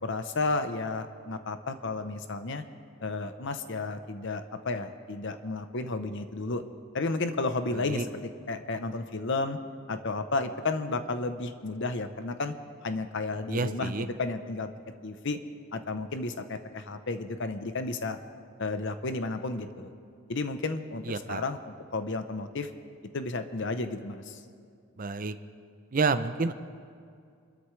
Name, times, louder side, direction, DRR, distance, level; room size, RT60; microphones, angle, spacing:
voice 1, 0.0-2.6 3.0-6.6 6.9-9.6 9.9-12.5 12.8-14.7 15.0-15.4 15.7-18.2 18.6-19.9 20.3-22.7 23.1-24.4, left 3 dB, 55° left, 9 dB, 0.8 m, -32 dB
voice 2, 7.7-8.1 13.5-14.1 21.0-21.4 25.0-25.4 25.9-26.5, right 4 dB, 40° right, 11 dB, 0.5 m, -29 dB
26.5 x 13.0 x 3.3 m, 2.3 s
head